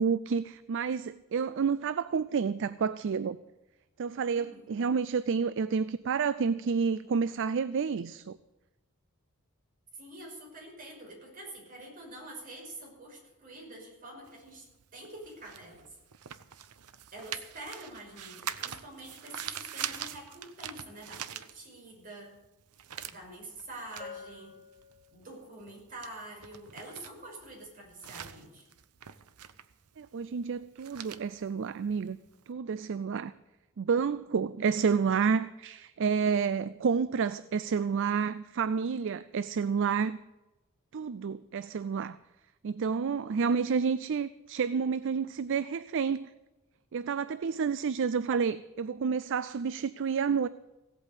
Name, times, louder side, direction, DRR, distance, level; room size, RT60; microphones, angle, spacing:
voice 1, 0.0-3.4 4.0-8.4 30.0-32.2 32.5-33.3 33.8-40.2 40.9-42.2 42.6-46.3 46.9-50.5, right 6 dB, 55° right, 0.4 m, -29 dB
voice 2, 4.3-4.7 10.0-14.7 14.9-15.9 17.1-22.3 23.1-24.6 25.1-28.6, right 1 dB, 40° right, 5.7 m, -46 dB
sound 1, 14.3-22.0 22.3-32.4, right 10 dB, 85° right, 0.8 m, -43 dB
Bell, 24.0-25.6, left 5 dB, 35° left, 1.9 m, -48 dB
16.5 x 8.4 x 8.1 m
head